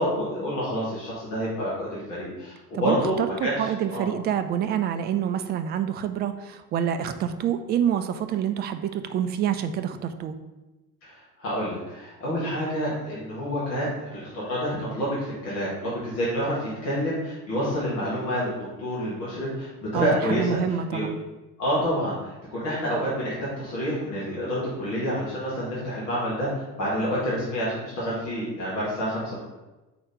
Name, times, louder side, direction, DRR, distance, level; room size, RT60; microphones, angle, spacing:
voice 1, 0.0-4.1 11.0-18.5 18.8-20.6 20.9-21.1 21.6-29.4, equal, 75° left, -8 dB, 2.2 m, -28 dB
voice 2, 2.7-3.3 3.6-10.3 19.9-21.1, right 9 dB, 25° right, 9 dB, 0.3 m, -27 dB
5.0 x 3.9 x 5.1 m, 1.1 s
figure-of-eight pair, 60°, 49 cm